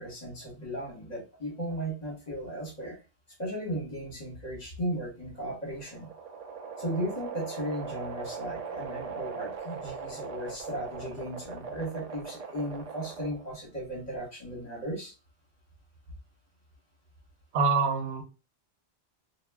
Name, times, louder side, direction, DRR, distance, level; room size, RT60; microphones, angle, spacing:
voice 1, 0.0-3.0 3.4-6.1 6.8-15.1, equal, 40° left, -2 dB, 1.1 m, -36 dB
sound 1, 5.4-13.6, right 5 dB, 60° right, 0.4 m, -40 dB
voice 2, 17.5-18.2, right 4 dB, 80° right, 3 dB, 1.0 m, -25 dB
2.3 x 2.1 x 3.3 m, 0.31 s
omnidirectional pair, 1.1 m